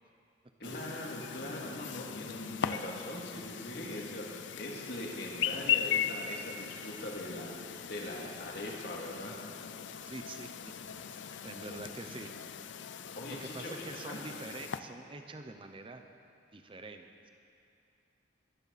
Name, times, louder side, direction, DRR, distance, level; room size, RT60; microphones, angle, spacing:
Chirp tweet, 0.6-14.8, left 9 dB, 75° left, 0.5 m, -38 dB
voice 1, 0.6-9.4 11.3-11.4 13.1-14.2, left 1 dB, 55° left, -2 dB, 2.5 m, -41 dB
sound 1, 6.3-12.2, right 1 dB, 70° right, 3.7 m, -61 dB
voice 2, 10.1-10.7 11.2-12.3 13.4-16.0 16.5-17.3, right 2 dB, 30° right, 6 dB, 0.7 m, -45 dB
21.5 x 14.5 x 4.2 m, 2.5 s
head